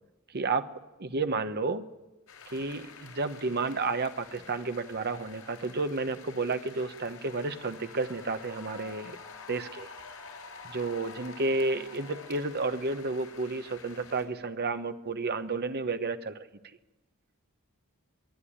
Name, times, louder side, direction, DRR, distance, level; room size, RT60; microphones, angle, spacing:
voice 1, 0.3-0.7 1.0-1.8 2.5-9.2 9.5-9.9 10.6-16.5, right 3 dB, 50° right, 9 dB, 1.0 m, -31 dB
sound 1, 2.3-14.3, left 4 dB, 90° left, 5.0 m, -48 dB
26.0 x 11.0 x 10.0 m, 1.1 s
head